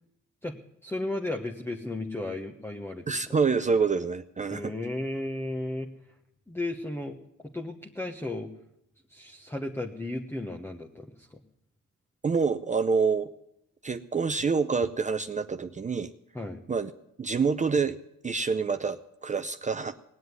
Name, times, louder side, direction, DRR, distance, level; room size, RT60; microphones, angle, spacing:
voice 1, 0.8-3.4 4.5-5.9 6.5-8.5 9.1-11.4 16.3-16.6, left 2 dB, 10° left, 1 dB, 1.2 m, -34 dB
voice 2, 3.1-4.7 12.2-13.3 13.8-16.1 16.7-16.9 17.2-18.0 18.2-20.0, right 5 dB, 25° right, 9 dB, 0.6 m, -27 dB
19.0 x 7.9 x 9.4 m, 0.82 s
cardioid pair, 95°, 30 cm